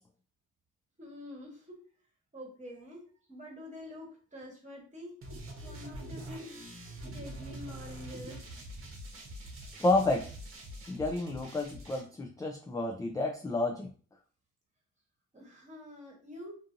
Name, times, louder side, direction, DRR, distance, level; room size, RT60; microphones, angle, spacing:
voice 1, 1.0-1.8 2.3-5.2 5.6-6.5 6.8-8.5 15.3-16.5, left 1 dB, 25° right, -1 dB, 1.2 m, -47 dB
sound 1, 5.2-12.0, right 1 dB, 45° right, 0.9 m, -44 dB
voice 2, 9.8-10.3 10.9-13.9, left 2 dB, 10° left, 0 dB, 0.3 m, -30 dB
2.6 x 2.5 x 2.5 m, 0.41 s
cardioid pair, 90°, 30 cm